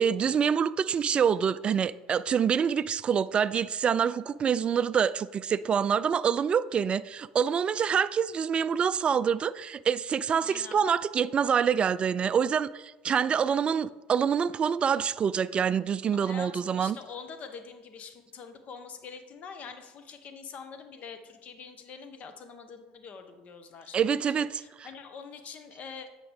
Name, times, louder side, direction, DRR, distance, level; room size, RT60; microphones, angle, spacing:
voice 1, 0.0-17.0 23.9-24.9, right 7 dB, 35° right, 0.3 m, -26 dB
voice 2, 10.4-10.8 16.1-26.1, left 6 dB, 45° left, 1.0 m, -45 dB
8.6 x 5.9 x 3.5 m
hypercardioid pair, 80°, 3 cm